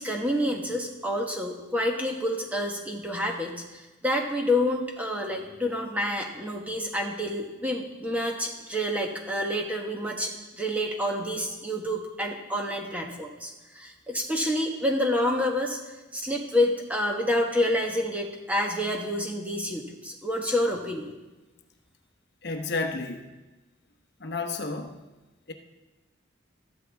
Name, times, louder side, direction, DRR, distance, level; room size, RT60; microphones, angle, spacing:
voice 1, 0.0-15.8 16.1-21.1, left 1 dB, 5° right, 1 dB, 1.2 m, -28 dB
voice 2, 22.4-23.2 24.2-24.9 25.5-25.6, left 3 dB, 50° left, 4 dB, 0.9 m, -31 dB
13.5 x 12.5 x 3.5 m, 1.1 s
head